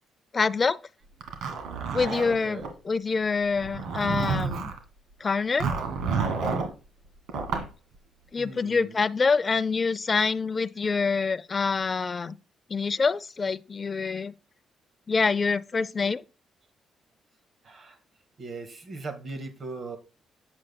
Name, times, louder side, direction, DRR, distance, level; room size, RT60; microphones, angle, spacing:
voice 1, 0.3-0.8 1.9-4.7 5.2-5.7 8.3-12.4 12.7-14.3 15.1-16.2, left 4 dB, 35° left, 0.5 m, -26 dB
Zipper (clothing), 1.2-2.7 3.5-4.8 5.6-6.7 7.3-7.7, right 5 dB, 80° right, 1.9 m, -29 dB
voice 2, 2.2-2.7 8.4-9.0 17.6-18.0 18.4-20.0, right 3 dB, 45° right, 1.6 m, -39 dB
7.6 x 7.6 x 2.2 m
cardioid pair, 90°, 0 cm